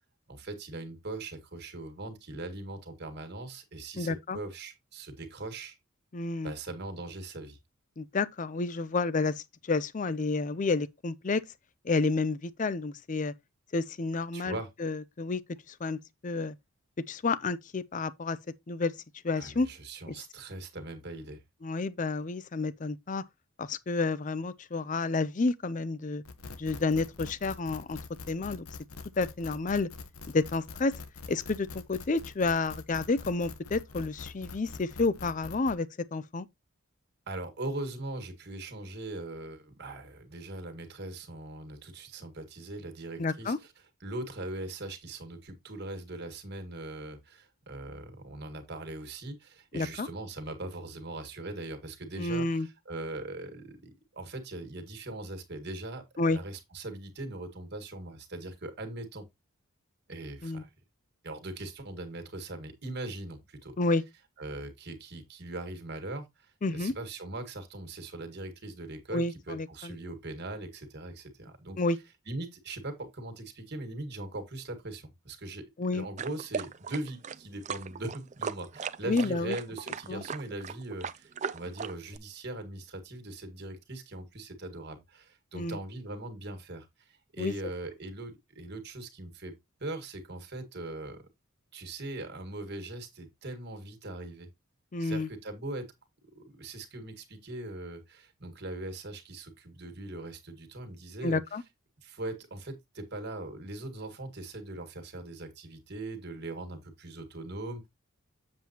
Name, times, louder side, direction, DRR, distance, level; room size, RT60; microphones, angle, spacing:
voice 1, 0.3-5.8 6.4-7.6 14.3-14.7 19.4-21.4 37.3-43.7 44.0-59.3 60.1-60.7 61.2-63.8 64.4-71.8 72.3-89.5 89.8-91.2 91.7-94.5 95.0-95.9 96.3-101.4 102.0-107.9, right 2 dB, 50° right, 1.8 m, -40 dB
voice 2, 4.0-4.4 6.1-6.5 8.0-11.4 11.8-13.3 13.7-15.4 15.7-16.5 17.1-18.4 18.7-18.9 19.2-19.7 20.1-20.2 21.6-23.2 23.6-26.2 26.6-28.0 28.3-28.7 29.2-29.9 30.3-30.9 31.3-36.5 43.2-43.6 49.7-50.1 52.2-52.7 56.2-56.4 60.4-60.6 63.8-64.0 66.6-66.9 69.1-69.9 71.8-72.0 75.8-76.1 79.1-79.6 80.1-80.2 85.5-85.8 87.4-87.5 94.9-95.3 101.2-101.6, left 3 dB, 35° left, 0.5 m, -30 dB
sound 1, 26.2-35.7, left 4 dB, 90° left, 1.2 m, -44 dB
sound 2, 76.2-82.2, right 6 dB, 35° right, 0.4 m, -38 dB
7.5 x 7.4 x 2.8 m
head